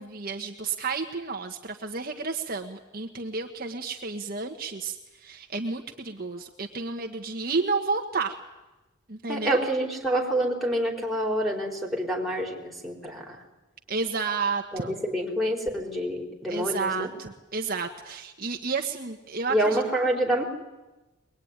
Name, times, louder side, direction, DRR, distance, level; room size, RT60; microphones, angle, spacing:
voice 1, 0.0-8.4 9.1-9.6 13.9-14.9 16.5-19.8, right 4 dB, 45° right, 3 dB, 1.4 m, -31 dB
voice 2, 9.3-13.4 14.7-17.1 19.5-20.4, right 1 dB, ahead, -1 dB, 4.3 m, -27 dB
23.0 x 21.0 x 9.7 m, 1.1 s
head